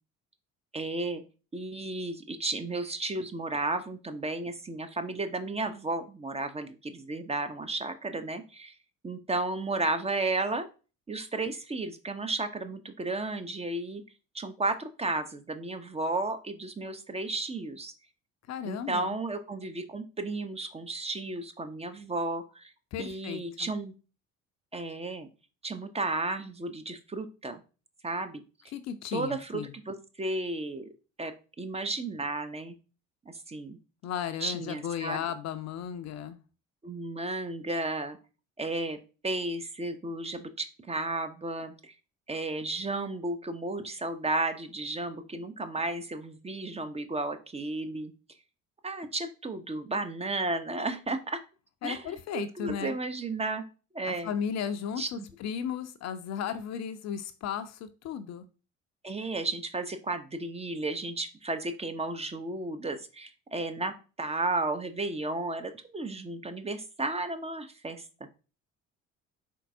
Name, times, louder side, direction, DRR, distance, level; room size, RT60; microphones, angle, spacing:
voice 1, 0.7-1.2 1.5-8.7 9.0-10.7 11.1-14.0 14.3-17.9 18.7-22.7 23.0-23.9 24.7-25.3 25.6-27.6 28.0-28.4 29.1-30.8 31.2-31.3 31.6-32.8 33.3-33.8 34.4-35.2 36.8-38.2 38.6-39.0 39.2-41.9 42.3-48.1 48.8-51.4 51.8-53.6 53.9-54.3 55.0-55.3 59.0-63.9 64.2-68.0, right 2 dB, 15° right, 8 dB, 0.6 m, -33 dB
voice 2, 18.5-19.2 22.9-23.7 28.7-29.7 34.0-36.4 51.8-53.0 54.1-58.4, left 8 dB, 45° left, 11 dB, 0.6 m, -35 dB
4.4 x 3.9 x 2.6 m, 0.33 s
figure-of-eight pair, 50°, 38 cm